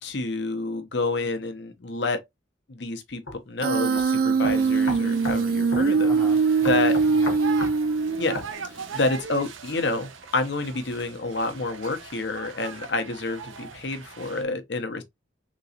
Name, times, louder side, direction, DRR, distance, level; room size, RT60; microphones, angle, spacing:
voice 1, 0.0-2.2 2.7-6.1 6.6-7.0 8.2-15.0, left 3 dB, 60° left, 0.8 m, -29 dB
sound 1, 3.3-3.4 4.0-4.1 4.4-5.4 5.7-5.9 6.6-7.8 8.3-8.5, left 2 dB, 90° left, 1.1 m, -33 dB
Human voice, 3.6-8.6, right 5 dB, 45° right, 0.3 m, -22 dB
sound 2, 4.5-14.4, right 5 dB, 80° right, 0.7 m, -41 dB
voice 2, 6.0-7.7, right 1 dB, 15° left, 0.5 m, -41 dB
3.8 x 3.0 x 2.7 m
head